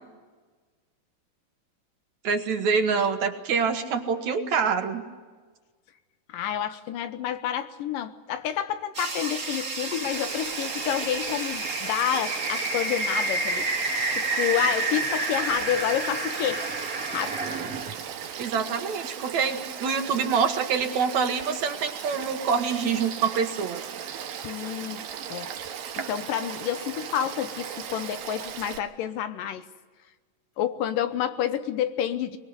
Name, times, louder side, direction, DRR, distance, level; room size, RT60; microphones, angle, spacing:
voice 1, 2.2-5.0 18.4-23.8 26.0-26.1, right 6 dB, 60° right, 6 dB, 2.4 m, -26 dB
voice 2, 6.3-16.6 17.1-17.4 24.4-25.5 26.1-29.7 30.6-32.4, left 10 dB, 75° left, 11 dB, 2.4 m, -29 dB
sound 1, 8.9-17.9, right 3 dB, 30° right, 2.2 m, -30 dB
Frog / Stream, 10.1-28.8, right 8 dB, 80° right, 3.3 m, -37 dB
23.5 x 21.5 x 8.1 m, 1.4 s
omnidirectional pair, 4.1 m